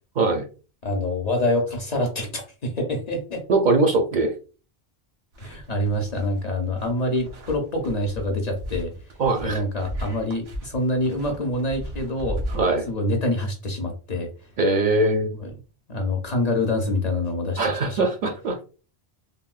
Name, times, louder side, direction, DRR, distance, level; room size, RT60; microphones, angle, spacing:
voice 1, 0.8-3.4 5.4-8.9 9.4-12.4 12.9-14.3 15.4-15.5 15.9-18.0, left 1 dB, 50° left, 2 dB, 0.6 m, -26 dB
voice 2, 3.5-4.3 9.2-9.6 12.5-12.8 14.6-15.3 17.6-18.6, right 2 dB, 60° right, 4 dB, 0.6 m, -21 dB
sound 1, 5.3-12.9, equal, 85° right, 1.1 m, -36 dB
3.6 x 2.1 x 2.3 m, 0.35 s
omnidirectional pair, 1.1 m